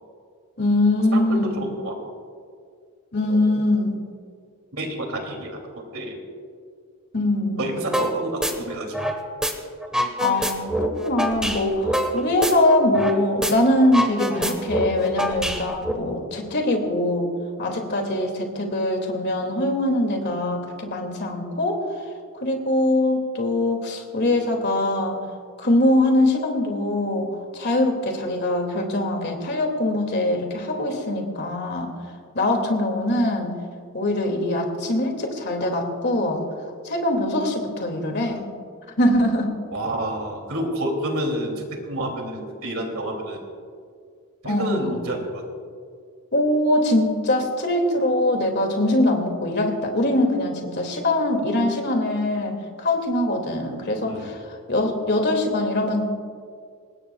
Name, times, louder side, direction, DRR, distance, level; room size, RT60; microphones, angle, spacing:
voice 1, 0.6-1.7 3.1-4.0 7.1-7.7 10.2-17.3 17.6-21.8 22.4-25.2 25.6-27.3 27.5-31.9 32.3-33.5 33.9-36.4 36.8-38.4 39.0-39.5 44.5-45.0 46.3-54.4 54.7-56.0, left 1 dB, 50° left, 2 dB, 2.4 m, -22 dB
voice 2, 1.1-2.0 3.3-3.4 4.7-6.2 7.2-7.3 7.6-8.9 39.7-43.4 44.4-45.4 54.1-54.3, right 1 dB, 65° right, 2 dB, 2.8 m, -29 dB
sound 1, 7.9-8.1 8.4-9.5 9.8-13.2 13.4-13.5 13.8-15.9, equal, 5° right, 1.3 m, -25 dB
24.0 x 19.5 x 2.4 m, 2.2 s
head